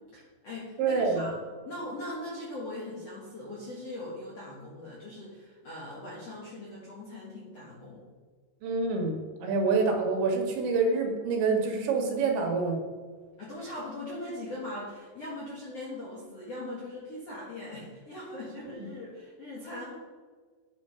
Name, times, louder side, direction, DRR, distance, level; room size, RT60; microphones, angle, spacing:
voice 1, 0.1-1.4 1.7-8.0 13.4-19.9, left 1 dB, 50° left, -5 dB, 1.9 m, -40 dB
voice 2, 0.8-1.3 8.6-12.8 18.8-18.9, right 4 dB, 75° right, 1 dB, 4.0 m, -27 dB
9.8 x 9.1 x 5.7 m, 1.5 s
omnidirectional pair, 5.4 m